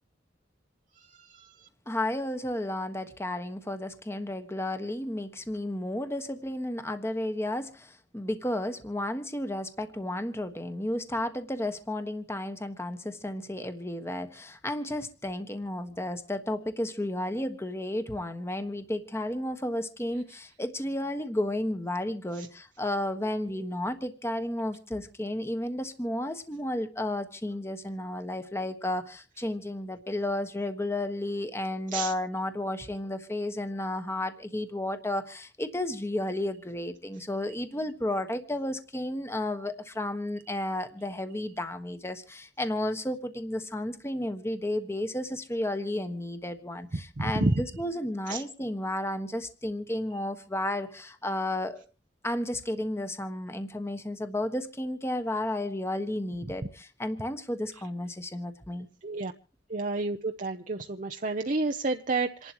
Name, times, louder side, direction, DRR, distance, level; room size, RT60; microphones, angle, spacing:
voice 1, 0.9-1.7 22.3-22.5 31.9-32.1 47.2-47.6 48.3-48.4 56.4-56.5 59.0-59.3 59.7-62.5, right 3 dB, 45° right, 0.8 m, -30 dB
voice 2, 1.9-51.8 52.2-58.9, left 1 dB, 15° left, 1.3 m, -32 dB
27.5 x 11.5 x 3.0 m
head